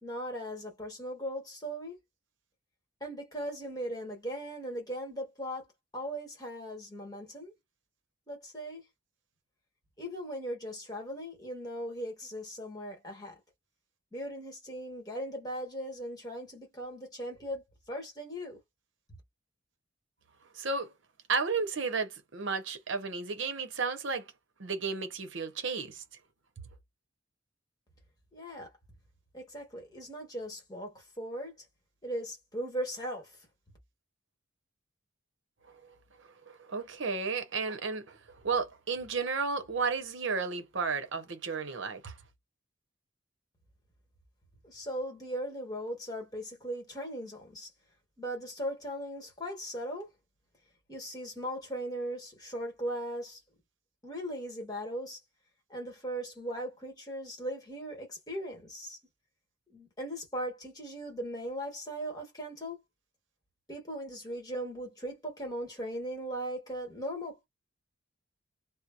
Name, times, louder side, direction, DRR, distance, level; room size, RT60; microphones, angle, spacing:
voice 1, 0.0-2.0 3.0-5.7 5.9-7.5 8.3-8.8 10.0-13.4 14.1-18.6 28.3-28.7 29.3-31.5 32.0-33.3 44.6-47.7 48.2-50.1 50.9-53.4 54.0-55.2 55.7-59.0 59.7-62.8 63.7-67.5, equal, 20° left, 1.3 m, -38 dB
voice 2, 20.5-20.9 21.3-24.2 24.6-26.0 36.5-42.2, right 4 dB, 65° right, 0.8 m, -33 dB
2.7 x 2.0 x 2.5 m
head